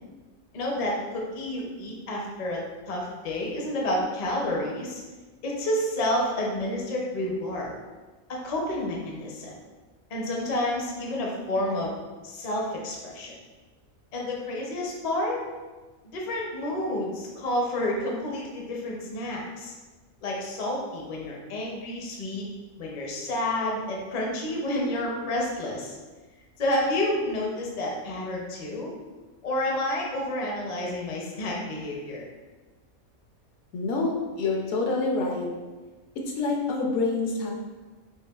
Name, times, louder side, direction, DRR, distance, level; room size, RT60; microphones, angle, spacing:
voice 1, 0.5-5.0 5.4-7.8 8.3-9.5 10.1-12.0 12.2-13.3 14.1-15.4 16.0-19.7 20.2-22.4 22.8-26.0 26.6-28.9 29.4-32.3, left 1 dB, 45° left, -2 dB, 0.6 m, -29 dB
voice 2, 33.7-35.5 36.3-37.5, left 3 dB, 70° left, 0 dB, 0.9 m, -27 dB
4.6 x 3.0 x 2.3 m, 1.3 s
omnidirectional pair, 1.5 m